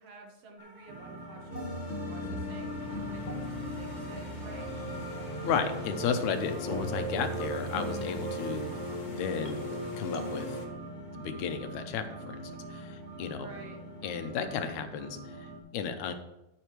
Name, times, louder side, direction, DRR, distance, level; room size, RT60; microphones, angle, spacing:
voice 1, 0.0-1.8 2.1-4.7 13.4-13.8, right 3 dB, 60° right, 1 dB, 2.3 m, -50 dB
sound 1, 0.6-14.4, left 2 dB, 30° right, 0.4 m, -54 dB
sound 2, 0.9-15.6, right 2 dB, 80° right, 3.2 m, -43 dB
sound 3, 1.5-10.7, equal, 40° left, 0.6 m, -37 dB
voice 2, 5.4-8.7 9.1-9.6 10.0-10.6 11.1-13.5 14.0-16.1, left 7 dB, 85° left, 8 dB, 2.2 m, -34 dB
10.5 x 9.1 x 3.2 m, 0.91 s
omnidirectional pair, 3.4 m